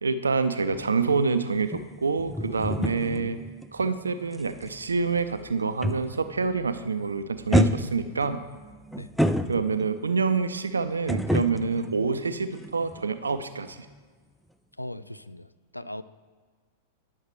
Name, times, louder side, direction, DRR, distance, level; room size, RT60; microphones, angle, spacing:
voice 1, 0.0-3.4 3.7-8.4 9.5-13.9, right 4 dB, 75° right, 11 dB, 0.5 m, -27 dB
sound 1, 0.7-6.4 6.7-7.0 7.5-10.0 11.1-13.0 13.3-13.4, equal, ahead, 0.4 m, -29 dB
voice 2, 14.8-15.5 15.7-16.0, left 1 dB, 90° left, 13 dB, 0.3 m, -38 dB
9.8 x 6.5 x 4.5 m, 1.5 s
figure-of-eight pair, 95°, 0 cm